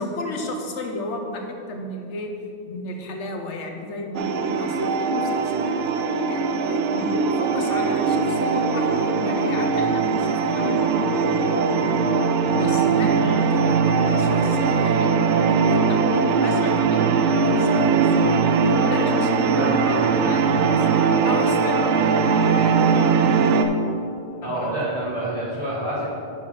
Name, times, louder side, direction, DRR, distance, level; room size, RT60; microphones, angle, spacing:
voice 1, 0.0-2.3 2.6-6.5 6.9-11.9 12.5-17.2 17.5-18.4 18.9-20.9 21.2-23.6 24.4-24.7, left 2 dB, 85° left, 3 dB, 1.2 m, -33 dB
sound 1, 4.1-23.6, right 5 dB, 85° right, 0.9 m, -20 dB
voice 2, 19.5-20.1 24.4-26.0, right 1 dB, 25° right, -13 dB, 2.1 m, -28 dB
6.5 x 5.8 x 6.2 m, 2.7 s
omnidirectional pair, 1.2 m